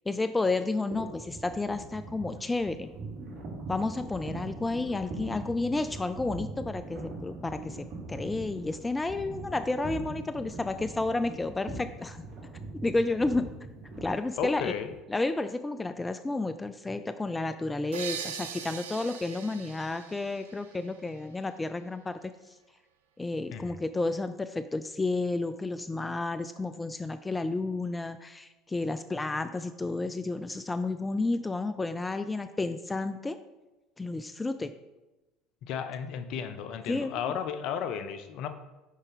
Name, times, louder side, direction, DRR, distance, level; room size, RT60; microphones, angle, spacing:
voice 1, 0.1-2.9 3.7-12.2 12.8-13.5 14.0-14.7 15.1-22.5 23.2-33.4 34.0-34.7 36.9-37.1, left 2 dB, 15° left, 11 dB, 0.3 m, -31 dB
sound 1, 0.9-15.0, right 2 dB, 50° right, 2.4 m, -41 dB
voice 2, 14.4-14.9 23.5-23.8 35.6-38.5, left 8 dB, 55° left, 9 dB, 0.6 m, -34 dB
sound 2, 17.9-21.5, right 8 dB, 75° right, 0.4 m, -41 dB
6.1 x 5.0 x 4.0 m, 1.1 s
hypercardioid pair, 65°, 0 cm